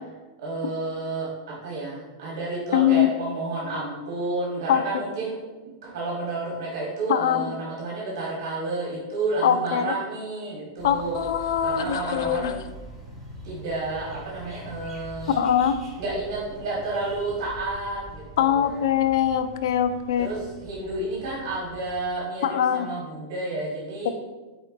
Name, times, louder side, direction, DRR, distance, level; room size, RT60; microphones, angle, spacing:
voice 1, 0.4-1.3 1.6-11.1 11.6-12.6 13.4-15.4 16.0-18.8 20.2-24.1, right 2 dB, 65° right, -5 dB, 1.2 m, -31 dB
voice 2, 2.7-3.1 4.7-4.8 7.1-7.5 9.4-9.9 10.8-12.6 15.4-15.8 18.4-20.3 22.4-22.9, left 9 dB, 75° left, 10 dB, 0.3 m, -22 dB
sound 1, 10.8-22.0, equal, ahead, 1.3 m, -44 dB
4.3 x 4.2 x 2.4 m, 1.2 s
supercardioid pair, 150°, 2 cm